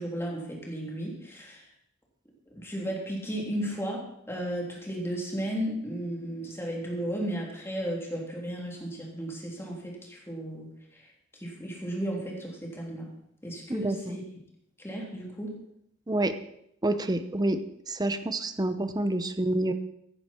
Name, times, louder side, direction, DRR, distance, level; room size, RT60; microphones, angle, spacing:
voice 1, 0.0-1.7 2.5-13.1 13.4-14.2 14.8-15.5, right 1 dB, 15° left, -2 dB, 3.4 m, -34 dB
voice 2, 13.7-14.2 16.1-16.3 16.8-17.6 17.9-19.7, right 1 dB, 20° right, 10 dB, 0.8 m, -28 dB
15.5 x 10.5 x 4.5 m, 0.75 s
head